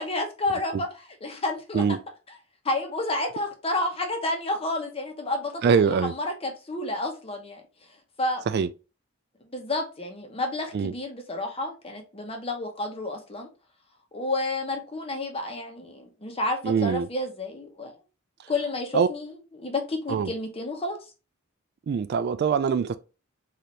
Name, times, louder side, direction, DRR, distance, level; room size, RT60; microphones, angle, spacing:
voice 1, 0.0-1.8 2.6-7.6 8.2-8.4 9.5-13.5 14.1-17.9 18.5-21.0, left 2 dB, 30° left, 1.0 m, -30 dB
voice 2, 5.6-6.1 8.5-8.7 10.7-10.9 16.6-17.1 18.9-19.1 20.1-20.3 21.9-23.0, right 6 dB, 50° right, 0.3 m, -23 dB
4.2 x 2.7 x 3.1 m
head